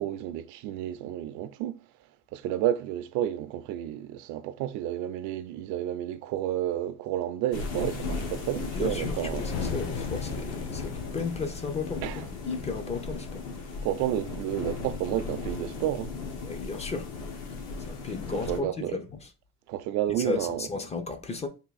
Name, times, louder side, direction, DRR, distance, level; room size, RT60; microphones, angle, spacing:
voice 1, 0.0-1.8 2.3-9.4 12.0-12.2 13.8-16.2 18.3-19.0 19.7-20.7, right 12 dB, 65° right, 0.5 m, -31 dB
sound 1, 7.5-18.6, left 4 dB, 70° left, 1.1 m, -36 dB
voice 2, 8.7-12.1 12.4-13.5 16.4-17.1 17.8-19.0 20.2-21.5, left 4 dB, 20° left, 0.5 m, -34 dB
sound 2, 9.3-13.7, left 5 dB, 50° left, 1.0 m, -40 dB
3.5 x 2.5 x 4.0 m
cardioid pair, 135°, 33 cm